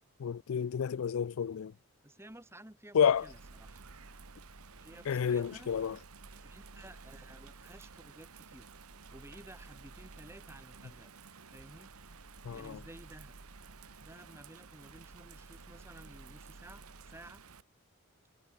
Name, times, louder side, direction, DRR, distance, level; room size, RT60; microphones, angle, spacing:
voice 1, 0.2-1.7 2.9-3.3 5.1-6.0 12.4-12.8, left 7 dB, 65° left, 0.4 m, -30 dB
voice 2, 2.0-3.8 4.8-5.7 6.3-8.7 9.1-11.1 11.5-11.9 12.5-13.3 14.0-17.4, right 1 dB, 10° right, 1.7 m, -54 dB
Bird vocalization bird call bird song / Rain, 3.0-17.6, right 4 dB, 75° right, 1.4 m, -53 dB
head